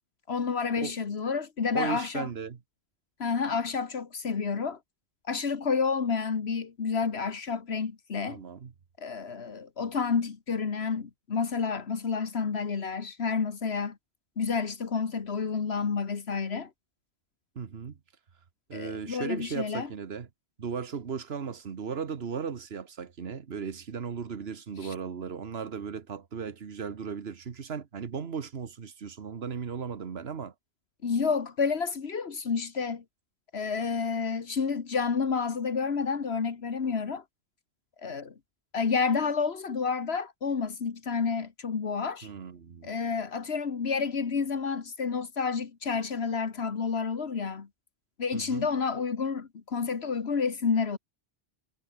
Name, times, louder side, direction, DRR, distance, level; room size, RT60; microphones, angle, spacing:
voice 1, 0.3-2.3 3.2-4.8 5.3-8.4 9.0-14.0 14.4-16.7 18.7-19.9 24.8-24.9 31.0-33.0 33.5-37.2 38.0-38.3 38.7-42.3 42.8-47.7 48.2-51.0, left 5 dB, 80° left, 1.7 m, -30 dB
voice 2, 1.7-2.6 8.3-8.7 17.5-18.0 18.7-20.3 20.6-30.5 42.2-42.9 48.3-48.7, right 6 dB, 75° right, 1.5 m, -36 dB
omnidirectional pair, 1.1 m